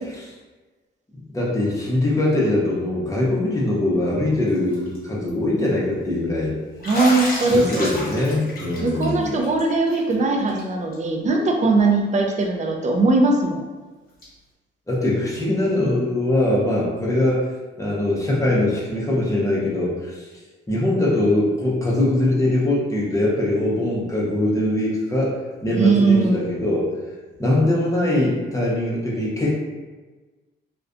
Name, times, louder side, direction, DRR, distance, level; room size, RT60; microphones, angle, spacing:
voice 1, 1.3-6.5 7.5-9.4 14.9-17.5 17.8-20.3 20.7-26.8 27.4-29.6, left 1 dB, 15° left, -5 dB, 0.7 m, -22 dB
Bathtub (filling or washing), 4.5-5.0 5.3-5.4 6.8-10.1 10.5-10.6 10.9-11.0 12.4-12.5 14.2-14.3, left 1 dB, 45° left, 0.9 m, -31 dB
voice 2, 6.8-7.9 8.8-13.6 25.7-26.6, right 3 dB, 35° right, 1 dB, 0.4 m, -20 dB
2.4 x 2.1 x 2.5 m, 1.3 s
cardioid pair, 90°, 20 cm